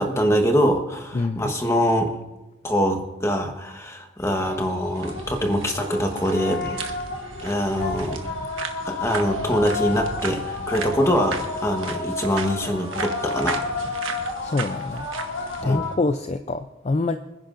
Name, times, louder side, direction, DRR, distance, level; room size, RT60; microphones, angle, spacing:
voice 1, 0.0-2.1 2.6-6.8 7.4-8.2 8.8-13.6 15.6-15.8, equal, 15° left, 4 dB, 1.2 m, -24 dB
voice 2, 1.1-1.5 14.4-15.1 15.4-17.2, left 3 dB, 30° left, 9 dB, 0.4 m, -25 dB
sound 1, 4.2-16.0, left 3 dB, 70° left, 1.9 m, -31 dB
sound 2, 4.9-15.6, right 5 dB, 70° right, 1.3 m, -37 dB
26.0 x 10.5 x 2.6 m, 1.1 s
head